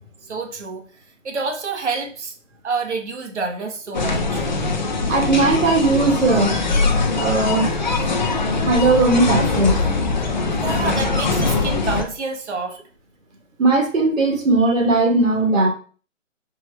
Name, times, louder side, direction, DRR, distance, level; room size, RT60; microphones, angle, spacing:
voice 1, 0.3-0.8 1.2-2.3 2.6-4.5 10.6-12.8, right 4 dB, 60° right, 1.0 m, -28 dB
sound 1, 3.9-12.0, left 3 dB, 35° left, 0.5 m, -22 dB
voice 2, 5.1-6.6 7.1-7.7 8.6-9.8 13.6-15.7, right 3 dB, 80° right, 1.6 m, -18 dB
4.4 x 2.3 x 4.2 m
hypercardioid pair, 165°, 39 cm